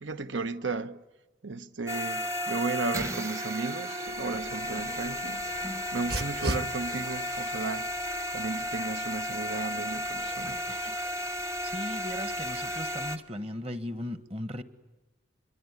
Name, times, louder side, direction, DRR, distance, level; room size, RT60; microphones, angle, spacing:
voice 1, 0.0-1.0 1.4-7.9 8.3-10.9, right 3 dB, 80° right, 1.1 m, -35 dB
sound 1, 1.9-13.2, equal, 15° right, 1.0 m, -34 dB
Dog, 4.1-13.1, right 1 dB, 55° right, 1.7 m, -42 dB
voice 2, 11.6-14.6, left 1 dB, 30° right, 1.4 m, -37 dB
26.5 x 22.5 x 9.8 m
head